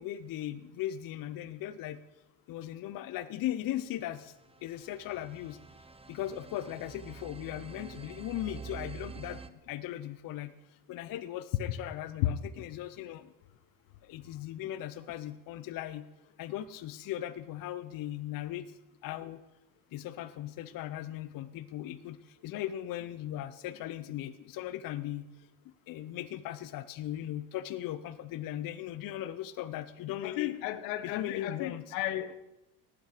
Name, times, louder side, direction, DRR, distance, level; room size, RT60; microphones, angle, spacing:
voice 1, 0.0-2.0 2.5-4.3 4.6-5.6 6.1-13.3 14.0-16.0 16.4-18.7 19.0-19.4 19.9-25.3 25.9-30.5 31.0-31.9, left 12 dB, 45° left, 12 dB, 0.7 m, -38 dB
sound 1, 4.1-9.5, right 5 dB, 15° right, 0.6 m, -47 dB
voice 2, 30.2-32.4, left 14 dB, 75° left, 12 dB, 1.1 m, -33 dB
18.0 x 8.6 x 5.0 m, 0.95 s
supercardioid pair, 95°, 46 cm